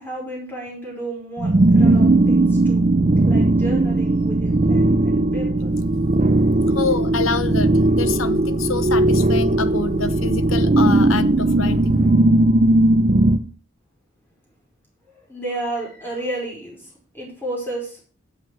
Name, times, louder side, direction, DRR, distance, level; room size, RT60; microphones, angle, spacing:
voice 1, 0.0-2.8 3.2-5.7 15.1-18.1, right 1 dB, 10° left, 5.0 m, -32 dB
sound 1, 1.4-13.4, right 2 dB, 35° right, 0.6 m, -17 dB
voice 2, 6.7-12.0, left 4 dB, 75° left, 0.8 m, -27 dB
8.8 x 7.8 x 6.0 m
head